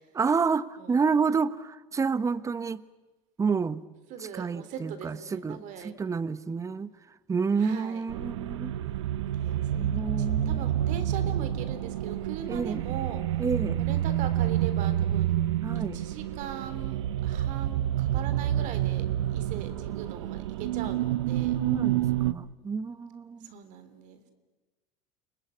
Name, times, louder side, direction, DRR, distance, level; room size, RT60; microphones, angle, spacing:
voice 1, 0.1-2.8 3.4-3.8 4.2-6.9 7.3-8.7 9.7-10.7 12.5-12.8 13.4-13.9 15.6-16.0 20.8-20.9 21.5-23.5, right 5 dB, 20° right, 17 dB, 1.0 m, -29 dB
voice 2, 4.1-5.9 7.6-8.0 9.4-9.9 10.2-13.2 13.8-15.4 15.9-19.1 19.3-21.6 23.4-24.3, right 8 dB, 60° right, 10 dB, 3.6 m, -40 dB
sound 1, 8.1-22.3, right 12 dB, 90° right, 0.9 m, -28 dB
29.5 x 19.5 x 9.7 m, 1.2 s
supercardioid pair, 95°, 15 cm